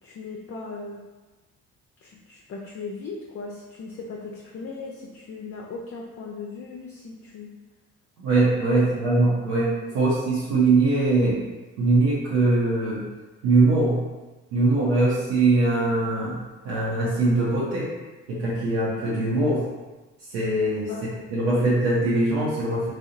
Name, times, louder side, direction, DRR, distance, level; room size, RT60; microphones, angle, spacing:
voice 1, 0.0-1.0 2.0-7.5 8.7-8.8 20.9-21.1, left 4 dB, 45° left, -2 dB, 0.5 m, -38 dB
voice 2, 8.2-11.4 11.8-13.0 13.4-14.0 14.5-16.4 16.6-17.9 18.3-19.6 20.3-22.9, right 2 dB, 85° right, -7 dB, 0.6 m, -22 dB
2.7 x 2.0 x 2.5 m, 1.2 s
hypercardioid pair, 55°, 33 cm